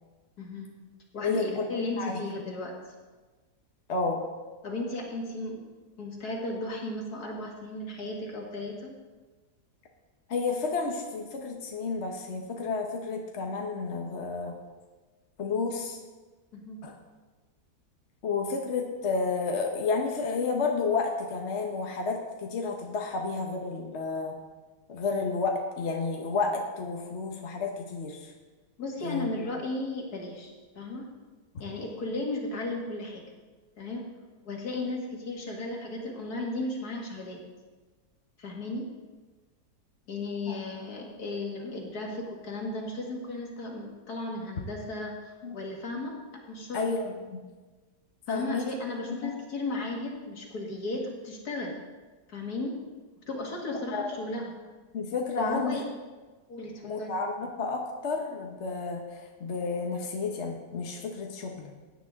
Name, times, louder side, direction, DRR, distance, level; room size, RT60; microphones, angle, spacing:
voice 1, 0.4-0.7 1.1-2.8 4.6-5.6 6.0-8.9 16.5-16.8 28.8-30.5 30.8-31.1 31.6-33.2 33.8-34.1 34.5-37.4 38.4-38.9 40.1-46.2 46.5-46.8 48.3-51.8 52.3-52.8 53.3-54.5 55.4-55.8 56.5-57.1, left 2 dB, 70° left, 0 dB, 2.4 m, -35 dB
voice 2, 1.2-1.7 2.0-2.2 3.9-4.3 10.3-14.6 15.4-16.0 16.8-16.9 18.2-24.4 24.9-28.3 29.0-29.3 40.5-40.6 45.4-45.5 46.7-47.4 48.3-48.7 49.1-49.3 53.9-54.1 54.9-55.8 56.8-61.7, left 4 dB, 45° left, 1 dB, 1.3 m, -31 dB
16.5 x 9.7 x 3.7 m, 1.3 s
omnidirectional pair, 1.7 m